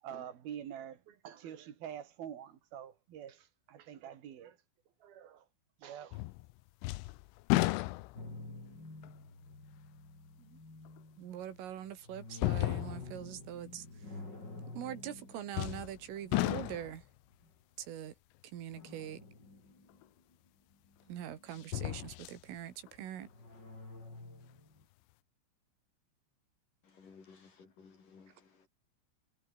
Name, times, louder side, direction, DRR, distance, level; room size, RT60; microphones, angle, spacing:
voice 1, 0.0-4.6 5.0-5.5 5.8-6.3, right 9 dB, 55° right, 4.0 m, -46 dB
sound 1, 6.1-6.5 6.8-8.4 9.0-9.1 11.0-11.1 12.3-13.2 15.5-16.0 16.3-17.0 20.0-20.1 21.5-22.4 22.9-23.0, left 21 dB, 80° left, 3.1 m, -33 dB
sound 2, 8.1-17.5 18.8-20.3 20.7-21.8 23.2-24.8, left 2 dB, 20° left, 7.1 m, -51 dB
voice 2, 11.2-14.2 14.7-17.1 17.8-18.1 18.4-19.3 21.1-23.3, right 10 dB, 85° right, 5.2 m, -43 dB
voice 3, 26.8-28.7, left 5 dB, 45° left, 5.6 m, -58 dB
omnidirectional pair, 5.7 m